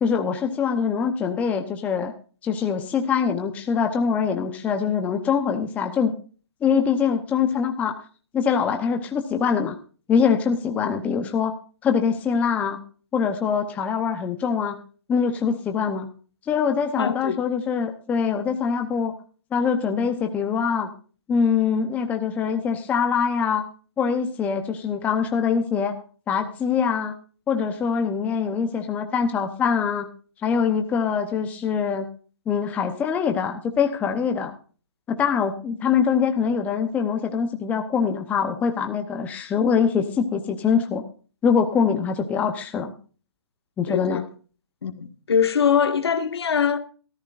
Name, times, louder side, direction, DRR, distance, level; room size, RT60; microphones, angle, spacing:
voice 1, 0.0-2.1 2.4-6.1 6.6-8.0 8.3-9.7 10.1-11.5 11.8-12.8 13.1-14.8 15.1-16.1 16.5-19.1 19.5-20.9 21.3-23.7 24.0-26.0 26.3-27.1 27.5-30.1 30.4-32.1 32.5-34.5 35.1-41.0 41.4-42.9 43.8-44.2, left 6 dB, 10° left, 0.9 m, -23 dB
voice 2, 17.0-17.4 43.9-44.2 44.8-46.8, left 7 dB, 65° left, 1.8 m, -22 dB
16.5 x 14.0 x 2.5 m
hypercardioid pair, 155°, 14 cm